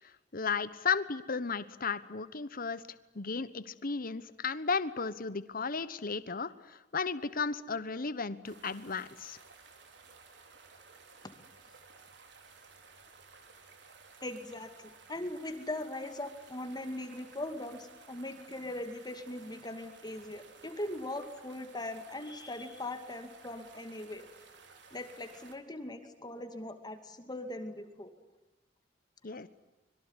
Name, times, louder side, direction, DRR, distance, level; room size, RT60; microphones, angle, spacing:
voice 1, 0.0-2.8 3.1-9.4 29.2-29.5, left 5 dB, 50° left, 14 dB, 1.1 m, -34 dB
sound 1, 8.4-25.6, right 4 dB, 65° right, 4.3 m, -56 dB
voice 2, 14.2-14.7 15.1-24.3 24.9-28.1, left 1 dB, 20° left, 7 dB, 2.4 m, -40 dB
25.5 x 23.0 x 9.8 m, 1.0 s
head